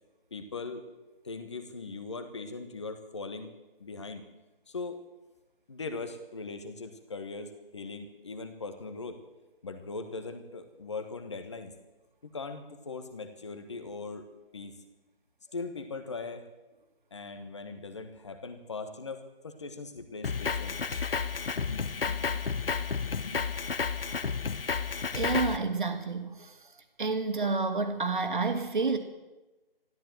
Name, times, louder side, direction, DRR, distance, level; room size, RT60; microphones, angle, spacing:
voice 1, 0.3-0.8 1.2-3.5 3.8-4.2 4.7-5.0 5.7-9.2 9.6-11.7 12.2-14.2 14.5-14.7 15.5-16.5 17.1-21.0 21.5-23.6, left 3 dB, 30° left, 8 dB, 1.4 m, -40 dB
Drum kit, 20.2-25.6, left 5 dB, 75° left, 1.1 m, -31 dB
voice 2, 25.1-26.5 27.0-29.0, right 4 dB, 55° right, 6 dB, 2.3 m, -29 dB
13.5 x 13.5 x 7.8 m, 1.1 s
figure-of-eight pair, 170°, 29 cm